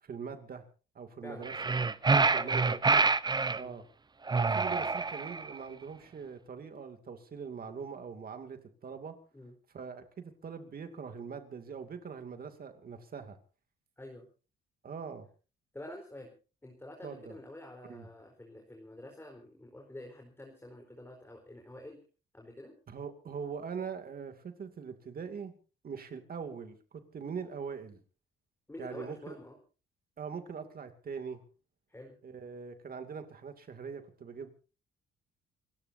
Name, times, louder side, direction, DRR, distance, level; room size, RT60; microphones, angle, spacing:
voice 1, 0.0-0.7 0.9-1.7 2.1-2.8 3.5-3.8 4.3-9.2 9.7-13.4 14.8-15.3 17.0-17.4 17.8-18.1 22.9-25.6 25.8-28.0 28.8-29.4 30.2-31.4 32.2-34.5, right 6 dB, 50° right, 7 dB, 2.6 m, -42 dB
sound 1, 1.4-3.6 4.3-5.5, right 4 dB, 20° right, 0.8 m, -27 dB
voice 2, 2.1-2.8 3.6-3.7 9.3-9.5 14.0-14.3 15.7-16.3 16.6-22.0 22.3-22.7 28.7-29.6 31.9-32.2, left 1 dB, 10° left, 2 dB, 4.2 m, -48 dB
29.0 x 14.5 x 2.8 m, 0.35 s
cardioid pair, 90°, 20 cm